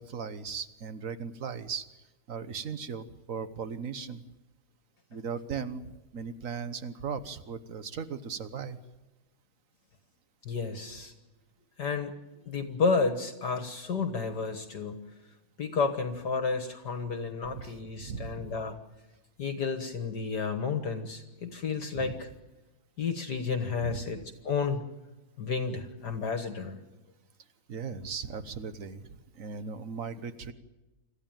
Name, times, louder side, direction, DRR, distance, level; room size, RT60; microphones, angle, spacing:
voice 1, 0.0-1.9 2.3-4.2 5.1-8.8 17.5-17.7 18.0-18.6 21.9-22.1 23.8-24.0 27.7-29.1 29.3-30.5, right 6 dB, 50° right, 12 dB, 1.2 m, -37 dB
voice 2, 10.5-11.1 11.8-12.1 12.4-15.0 15.6-18.8 19.4-22.3 23.0-24.2 24.4-24.8 25.4-26.8, left 5 dB, 55° left, 7 dB, 1.9 m, -31 dB
26.5 x 14.5 x 9.0 m, 1.1 s
omnidirectional pair, 2.3 m